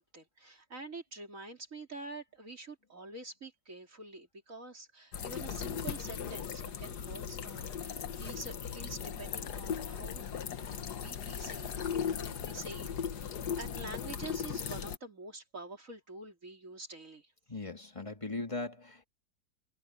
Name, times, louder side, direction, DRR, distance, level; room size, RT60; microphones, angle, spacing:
voice 1, 0.0-10.3 10.9-17.3, right 2 dB, 50° right, 3.8 m, -47 dB
sound 1, 5.1-15.0, left 7 dB, 70° left, 1.7 m, -38 dB
voice 2, 17.5-19.0, left 3 dB, 20° left, 2.1 m, -39 dB
omnidirectional pair, 1.8 m